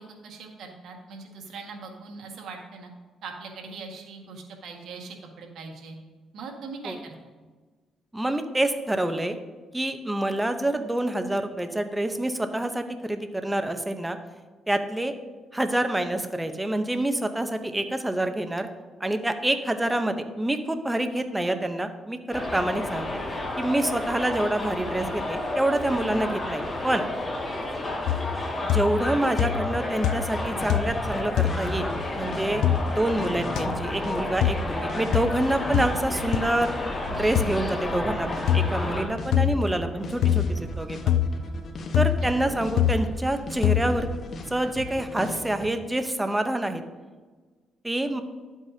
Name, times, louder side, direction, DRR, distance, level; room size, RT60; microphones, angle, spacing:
voice 1, 0.0-2.9 3.2-6.0 6.3-7.1, right 4 dB, 75° right, 2 dB, 1.7 m, -41 dB
voice 2, 8.1-9.4 9.7-14.2 14.7-15.1 15.5-18.7 19.0-23.1 23.6-27.1 28.7-31.9 32.2-36.7 37.1-41.2 41.9-44.1 44.5-46.8 47.8-48.2, right 1 dB, 10° right, 8 dB, 0.8 m, -27 dB
Subway metro underground, 22.3-39.0, left 2 dB, 25° left, 2.0 m, -32 dB
sound 1, 28.1-28.4 28.7-29.1 29.4-29.8 30.0-30.4 30.7-31.0 31.4-31.6 32.6-32.8 33.6-33.7 34.4-34.6 35.1-35.3 35.7-35.9 36.3-36.4 37.4-37.5 38.5-38.7 39.3-39.6 40.2-40.5 41.1-41.3 41.9-42.2 42.8-43.0 43.6-43.9, left 10 dB, 80° left, 0.4 m, -23 dB
sound 2, 30.5-45.7, left 2 dB, 55° left, 1.4 m, -37 dB
11.5 x 8.2 x 2.8 m, 1.4 s
cardioid pair, 90°, 0 cm